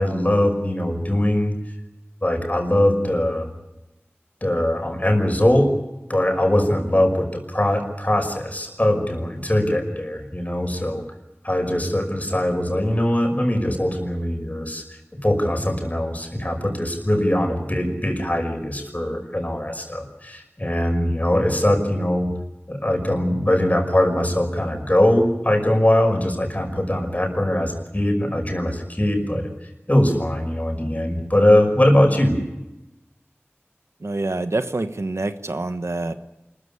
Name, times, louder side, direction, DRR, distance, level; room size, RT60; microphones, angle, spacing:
voice 1, 0.0-1.5 2.2-3.5 4.4-5.7 6.1-11.1 11.4-14.8 15.2-22.3 22.7-29.4 29.9-32.4, left 1 dB, 35° left, 4 dB, 5.7 m, -21 dB
voice 2, 34.0-36.1, right 2 dB, 85° right, 9 dB, 1.2 m, -26 dB
26.0 x 14.5 x 9.8 m, 0.99 s
wide cardioid pair, 40°, 5 cm